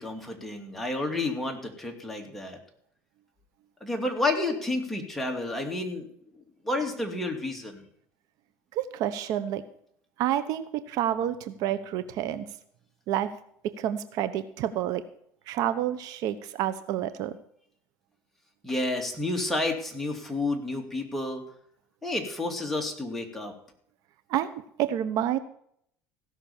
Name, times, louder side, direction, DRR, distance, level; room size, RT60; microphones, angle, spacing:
voice 1, 0.0-2.6 3.8-6.1 6.6-7.8 18.6-21.4 22.0-23.5, left 2 dB, 5° left, 1 dB, 2.6 m, -30 dB
voice 2, 8.7-9.6 10.2-12.5 13.1-13.3 13.6-15.0 15.5-17.4 24.3-24.5 24.8-25.4, right 11 dB, 65° right, 12 dB, 0.9 m, -29 dB
16.0 x 6.2 x 7.1 m, 0.67 s
supercardioid pair, 115°, 7 cm